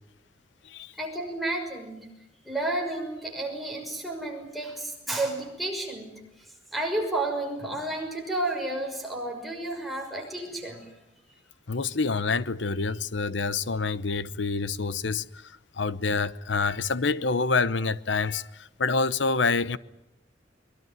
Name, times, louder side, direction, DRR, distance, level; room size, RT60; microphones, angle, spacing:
voice 1, 1.0-2.1 2.4-6.5 6.7-10.9, right 2 dB, ahead, 6.1 m, -31 dB
voice 2, 11.7-19.8, left 4 dB, 75° left, 0.9 m, -27 dB
23.5 x 22.5 x 9.5 m
head